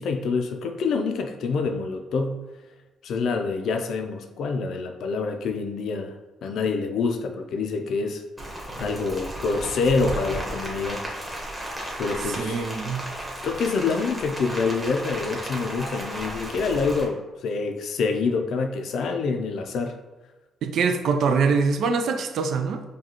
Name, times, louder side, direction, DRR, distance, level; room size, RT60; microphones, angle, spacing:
voice 1, 0.0-2.4 3.0-6.1 6.4-8.2 8.8-11.1 12.0-12.7 13.4-20.0, left 4 dB, 70° left, 5 dB, 0.4 m, -26 dB
Rain, 8.4-17.0, right 1 dB, 15° right, 1.1 m, -34 dB
voice 2, 12.3-13.1 20.6-22.8, right 5 dB, 70° right, 7 dB, 0.4 m, -24 dB
4.8 x 2.3 x 2.9 m, 1.1 s
cardioid pair, 90°, 0 cm